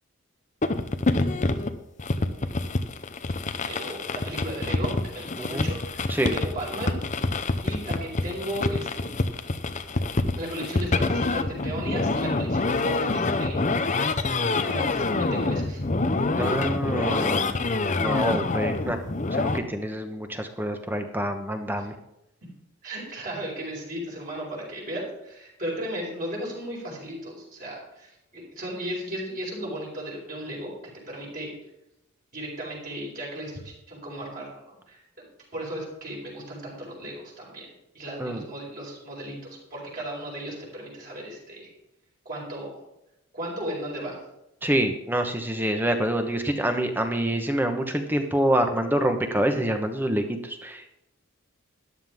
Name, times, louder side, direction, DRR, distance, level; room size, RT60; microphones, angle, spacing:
sound 1, 0.6-19.6, left 3 dB, 35° left, 0.7 m, -26 dB
voice 1, 3.6-7.0 7.3-7.4 7.6-9.1 10.4-13.7 14.1-15.8 21.8-21.9 22.8-30.7 31.1-31.5 32.3-35.2 35.5-41.7 42.2-42.8 43.3-44.2, right 1 dB, 40° right, -4 dB, 4.6 m, -35 dB
voice 2, 5.4-5.7 6.1-6.4 16.4-17.5 18.0-19.0 19.3-21.9 38.2-38.4 44.6-50.9, right 1 dB, 10° right, 6 dB, 1.1 m, -26 dB
13.0 x 11.5 x 3.6 m, 0.85 s
head